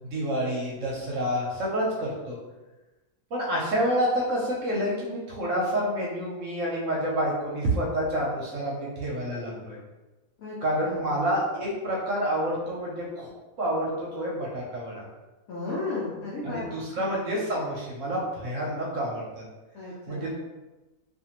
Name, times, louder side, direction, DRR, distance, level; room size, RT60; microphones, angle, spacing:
voice 1, 0.1-2.4 3.3-9.8 10.6-13.3 13.6-15.0 16.4-19.4 20.1-20.4, equal, 65° right, -4 dB, 0.9 m, -28 dB
voice 2, 15.5-16.7 19.7-20.4, left 3 dB, 65° left, -8 dB, 1.0 m, -34 dB
2.5 x 2.5 x 2.8 m, 1.1 s
omnidirectional pair, 1.7 m